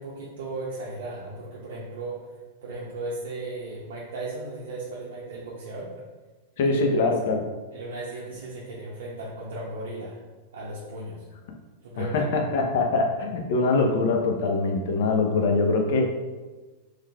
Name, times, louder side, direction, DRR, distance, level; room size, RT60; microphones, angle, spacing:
voice 1, 0.0-2.2 2.6-5.9 6.6-6.8 7.7-10.2 10.5-11.3 11.8-12.3, right 2 dB, 75° right, -5 dB, 0.6 m, -36 dB
voice 2, 6.6-7.4 12.0-16.1, left 3 dB, 65° left, 2 dB, 0.6 m, -23 dB
3.8 x 3.1 x 2.3 m, 1.3 s
hypercardioid pair, 130°, 0 cm